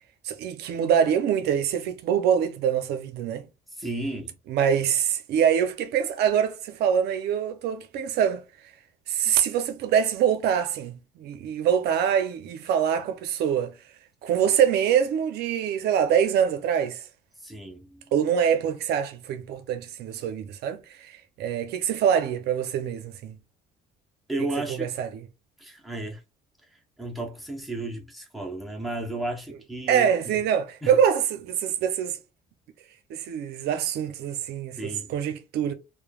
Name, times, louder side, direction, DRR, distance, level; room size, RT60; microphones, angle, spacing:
voice 1, 0.2-3.4 4.5-8.4 9.1-13.7 14.2-17.0 18.1-21.1 21.4-23.4 24.8-25.1 29.9-32.2 33.1-35.7, right 8 dB, 75° right, 0.5 m, -24 dB
voice 2, 3.7-4.3 17.4-18.0 24.3-24.9 25.6-26.2 26.7-30.4 30.8-30.9 34.8-35.1, right 2 dB, ahead, 0.8 m, -33 dB
3.1 x 2.0 x 2.3 m
cardioid pair, 110°, 17 cm